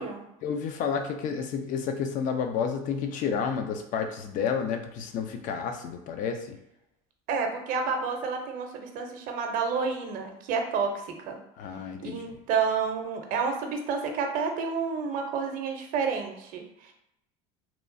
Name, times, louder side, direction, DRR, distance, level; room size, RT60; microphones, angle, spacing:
voice 1, 0.4-6.6 11.6-12.2, left 6 dB, 55° left, 6 dB, 0.5 m, -30 dB
voice 2, 7.3-11.4 12.0-16.9, right 5 dB, 60° right, 4 dB, 0.6 m, -30 dB
2.9 x 2.3 x 2.6 m, 0.81 s
supercardioid pair, 100°, 16 cm